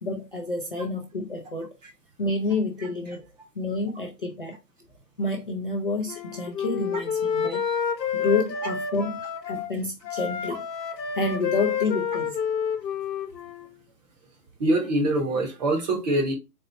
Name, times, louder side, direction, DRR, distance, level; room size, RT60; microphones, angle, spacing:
voice 1, 0.0-1.7 2.2-3.3 3.6-4.6 5.2-7.6 8.1-9.1 9.4-10.6 11.1-12.4, left 3 dB, 35° left, 0.4 m, -29 dB
Wind instrument woodwind instrument, 6.1-9.7 10.0-13.7, left 7 dB, 85° left, 0.9 m, -29 dB
voice 2, 7.4-7.8 14.6-16.3, right 1 dB, 25° right, 0.9 m, -25 dB
4.2 x 2.1 x 3.9 m
hypercardioid pair, 150°, 50 cm